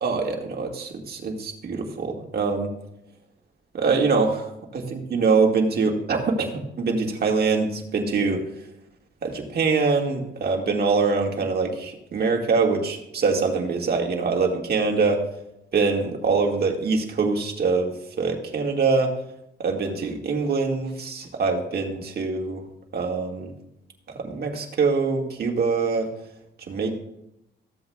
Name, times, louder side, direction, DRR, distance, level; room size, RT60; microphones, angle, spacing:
voice 1, 0.0-2.7 3.7-6.5 6.8-8.4 9.2-15.2 15.7-19.1 19.6-22.6 22.9-23.5 24.2-26.1 26.7-27.0, right 4 dB, 50° right, 2 dB, 1.8 m, -24 dB
14.5 x 7.8 x 2.3 m, 0.84 s
cardioid pair, 90°, 20 cm